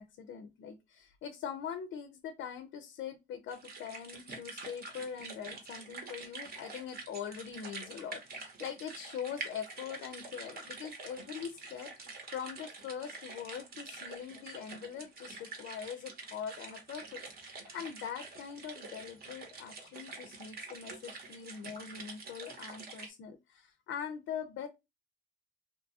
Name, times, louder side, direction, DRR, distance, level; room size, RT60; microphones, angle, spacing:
voice 1, 0.0-24.7, left 8 dB, 75° left, 9 dB, 0.4 m, -43 dB
sound 1, 3.5-23.1, right 3 dB, 50° right, 0.8 m, -47 dB
2.7 x 2.3 x 2.6 m, 0.24 s
cardioid pair, 90°, 20 cm